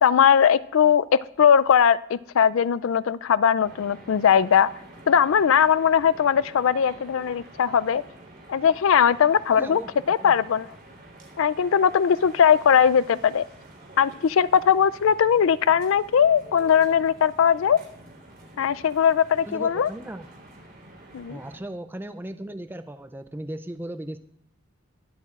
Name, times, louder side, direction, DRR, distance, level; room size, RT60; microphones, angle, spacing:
voice 1, 0.0-4.7 5.1-8.0 8.5-9.8 10.1-10.7 11.4-13.4 14.0-17.8 18.6-19.9 21.1-21.4, left 8 dB, 75° left, 17 dB, 0.4 m, -20 dB
sound 1, 3.6-21.6, right 1 dB, 45° right, 3.7 m, -48 dB
voice 2, 9.5-9.9 10.2-10.3 19.5-20.3 21.3-24.2, right 1 dB, 10° right, 10 dB, 0.4 m, -36 dB
22.0 x 8.5 x 2.4 m, 0.78 s
head